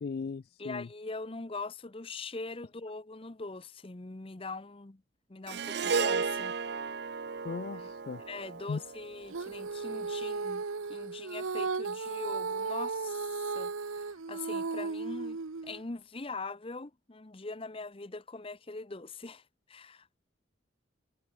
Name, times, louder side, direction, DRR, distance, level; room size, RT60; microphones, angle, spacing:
voice 1, 0.0-0.9 7.4-8.2 8.7-8.8, left 5 dB, 50° left, 0.3 m, -37 dB
voice 2, 0.6-5.0 5.3-6.6 7.8-7.9 8.3-19.4 19.7-20.1, left 3 dB, 25° left, 0.7 m, -42 dB
Harp, 5.5-9.9, right 5 dB, 55° right, 0.6 m, -34 dB
Female singing, 9.3-15.8, right 4 dB, 85° right, 0.9 m, -35 dB
head